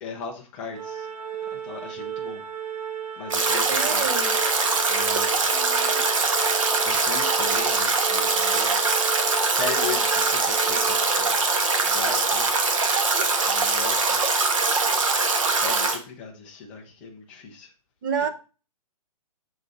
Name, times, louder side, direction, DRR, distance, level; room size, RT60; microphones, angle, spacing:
voice 1, 0.0-1.1 1.5-2.4 3.2-4.1 4.9-5.3 6.8-9.2 9.5-11.4 11.8-12.5 13.4-14.2 15.5-17.7, left 5 dB, 5° left, 0.4 m, -37 dB
Organ, 0.7-11.6, right 8 dB, 75° right, 2.5 m, -34 dB
Stream / Drip / Trickle dribble, 3.3-16.0, right 3 dB, 55° right, 1.3 m, -22 dB
voice 2, 3.7-4.4 5.5-6.1 18.0-18.3, right 7 dB, 30° right, 0.7 m, -29 dB
6.6 x 3.9 x 4.7 m
hypercardioid pair, 170°, 20 cm